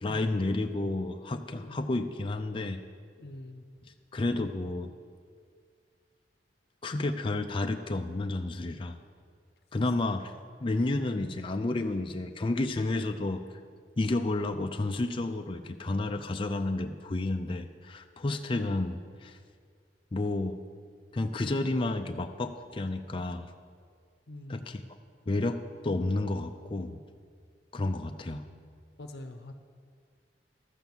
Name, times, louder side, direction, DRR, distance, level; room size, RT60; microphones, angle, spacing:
voice 1, 0.0-2.8 4.1-4.9 6.8-9.0 9.7-10.3 10.6-13.4 14.0-19.4 20.1-20.6 21.1-23.5 24.5-24.8 25.3-27.0 27.7-28.4, left 2 dB, 30° left, 5 dB, 0.5 m, -31 dB
voice 2, 1.5-1.8 3.2-3.6 24.3-24.8 29.0-29.5, left 1 dB, 65° left, 6 dB, 0.8 m, -44 dB
12.5 x 7.9 x 7.2 m, 2.1 s
head